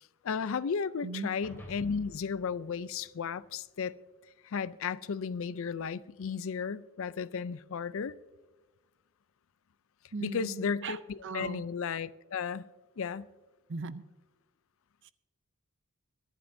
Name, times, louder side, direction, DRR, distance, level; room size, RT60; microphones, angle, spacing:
voice 1, 0.2-3.9 4.4-8.2 10.2-12.7 13.0-13.3, left 6 dB, 65° left, 0.4 m, -34 dB
sound 1, 1.4-3.9, equal, 10° left, 3.2 m, -52 dB
voice 2, 10.1-11.6 13.7-14.0 15.0-15.1, right 4 dB, 55° right, 0.6 m, -39 dB
23.0 x 11.0 x 2.7 m
head